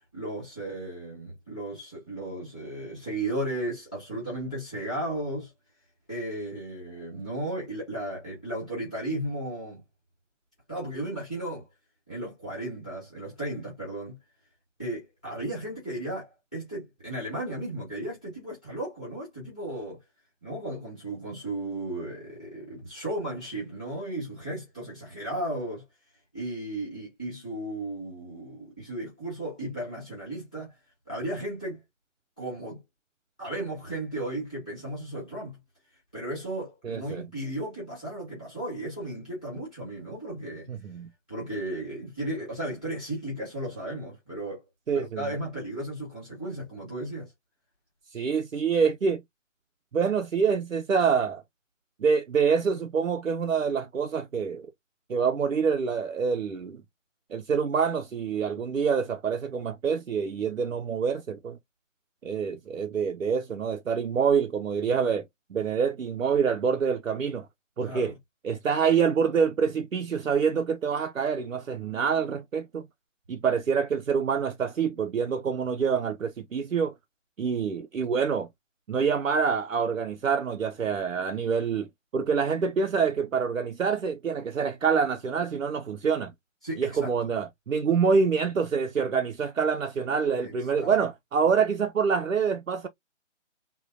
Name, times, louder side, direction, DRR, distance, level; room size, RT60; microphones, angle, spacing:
voice 1, 0.1-5.5 6.1-9.8 10.7-11.7 12.1-14.2 14.8-20.0 20.4-25.8 26.3-30.7 31.1-31.8 32.4-32.8 33.4-35.6 36.1-40.7 41.3-44.6 44.9-47.3 67.8-68.1 86.6-87.1 90.3-91.0, right 1 dB, 5° left, 0.8 m, -35 dB
voice 2, 36.8-37.2 40.7-41.1 44.9-45.3 48.1-49.2 49.9-51.4 52.0-54.7 55.1-56.8 57.3-61.6 62.2-65.2 65.5-67.5 67.8-68.1 68.4-72.8 73.3-76.9 77.4-78.5 78.9-81.9 82.1-86.3 86.8-92.9, right 6 dB, 85° right, 0.6 m, -26 dB
3.6 x 2.2 x 2.5 m
figure-of-eight pair, 150°, 39 cm